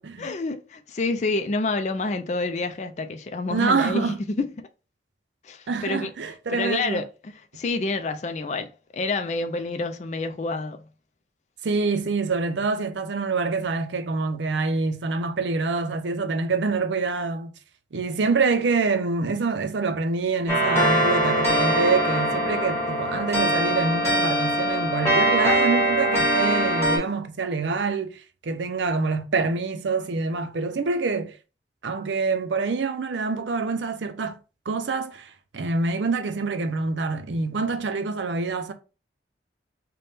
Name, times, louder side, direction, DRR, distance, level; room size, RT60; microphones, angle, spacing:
voice 1, 0.2-4.7 5.4-6.1 6.5-10.8, left 3 dB, 40° left, 0.4 m, -28 dB
voice 2, 3.5-4.2 5.7-7.0 11.6-17.5 17.9-31.3 31.8-34.4 34.7-38.7, right 4 dB, 85° right, 0.5 m, -26 dB
sound 1, 20.5-27.0, right 1 dB, 15° left, 1.3 m, -22 dB
3.4 x 2.2 x 4.1 m
head